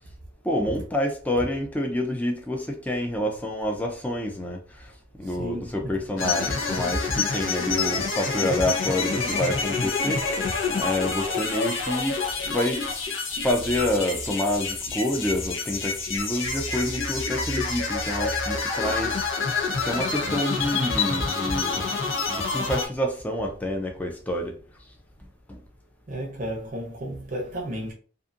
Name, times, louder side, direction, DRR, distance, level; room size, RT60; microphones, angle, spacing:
voice 1, 0.4-12.9 13.4-19.5 19.8-22.0 22.3-24.6 25.5-25.6, left 1 dB, 10° left, 0.4 m, -28 dB
voice 2, 5.2-6.0 10.7-10.9 26.1-27.9, right 1 dB, 45° right, 0.6 m, -34 dB
sound 1, 6.2-22.9, left 4 dB, 85° left, 0.7 m, -28 dB
2.5 x 2.5 x 2.5 m
head